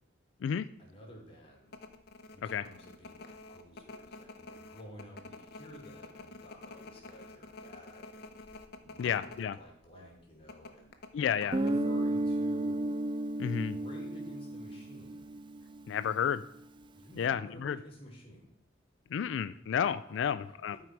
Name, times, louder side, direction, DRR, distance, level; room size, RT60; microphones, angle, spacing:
voice 1, 0.8-1.7 2.3-8.2 8.8-10.9 11.4-12.9 13.7-15.3 16.9-18.5 20.1-20.8, equal, 30° left, -1 dB, 2.4 m, -52 dB
sound 1, 1.7-9.5 9.7-9.8 10.5-12.2 12.4-12.5, left 3 dB, 55° left, 0.8 m, -49 dB
voice 2, 9.0-9.6 11.1-11.6 13.4-13.7 15.9-16.4 17.2-17.8 19.1-20.8, left 8 dB, 75° left, 12 dB, 0.3 m, -31 dB
Guitar, 11.5-16.1, right 1 dB, 25° right, 0.4 m, -33 dB
12.0 x 4.6 x 4.6 m, 0.77 s
head